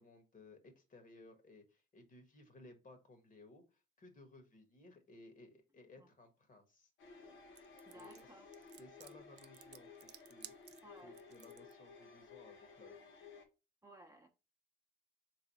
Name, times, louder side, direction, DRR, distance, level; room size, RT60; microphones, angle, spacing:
voice 1, 0.0-6.9 7.9-8.3 8.8-10.7 11.0-13.1, left 2 dB, 40° left, 1.3 m, -60 dB
sound 1, 7.0-13.4, left 4 dB, 80° left, 1.1 m, -57 dB
sound 2, 7.6-11.7, right 11 dB, 60° right, 0.4 m, -56 dB
voice 2, 7.9-8.5 10.8-11.2 13.8-14.3, right 1 dB, 15° right, 0.8 m, -58 dB
3.7 x 3.3 x 4.1 m
cardioid pair, 90°, 20 cm